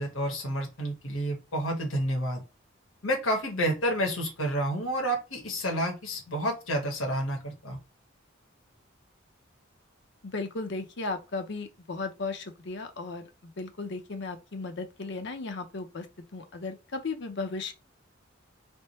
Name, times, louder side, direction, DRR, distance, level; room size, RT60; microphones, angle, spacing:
voice 1, 0.0-2.4 3.0-7.8, equal, 75° left, 1.2 m, -29 dB
voice 2, 10.2-16.1 16.3-17.7, left 3 dB, 55° left, 0.7 m, -35 dB
3.5 x 2.1 x 4.1 m
head